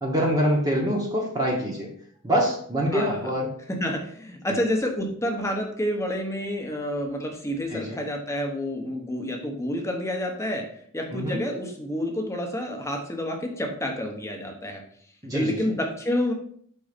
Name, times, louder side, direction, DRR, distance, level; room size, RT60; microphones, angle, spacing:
voice 1, 0.0-1.9 2.2-3.5 7.7-8.0 11.1-11.4 15.2-15.6, equal, 15° right, -2 dB, 1.0 m, -25 dB
voice 2, 2.9-3.3 3.8-10.6 10.9-14.8 15.3-16.3, left 1 dB, 15° left, 2 dB, 0.9 m, -29 dB
5.4 x 3.8 x 5.1 m, 0.63 s
head